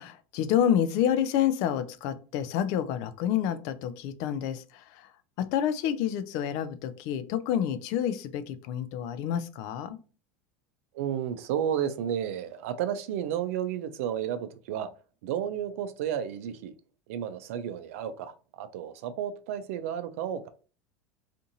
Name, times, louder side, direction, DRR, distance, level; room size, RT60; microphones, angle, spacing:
voice 1, 0.0-5.1 5.4-10.0, left 9 dB, 60° left, 0.4 m, -28 dB
voice 2, 10.9-14.9 15.2-16.7 17.1-20.5, right 9 dB, 75° right, 0.4 m, -32 dB
2.5 x 2.5 x 2.8 m
supercardioid pair, 115°, 7 cm